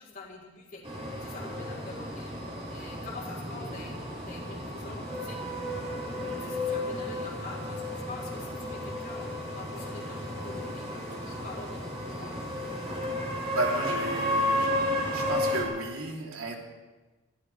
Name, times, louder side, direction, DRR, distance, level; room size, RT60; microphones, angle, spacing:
voice 1, 0.0-2.3 2.7-5.4 6.4-12.3, left 3 dB, 40° left, -2 dB, 3.7 m, -45 dB
sound 1, 0.8-15.6, left 1 dB, 30° right, 4.0 m, -33 dB
voice 2, 13.5-14.7 15.1-16.6, right 2 dB, 75° right, -1 dB, 3.1 m, -33 dB
26.5 x 16.0 x 3.3 m, 1.2 s
head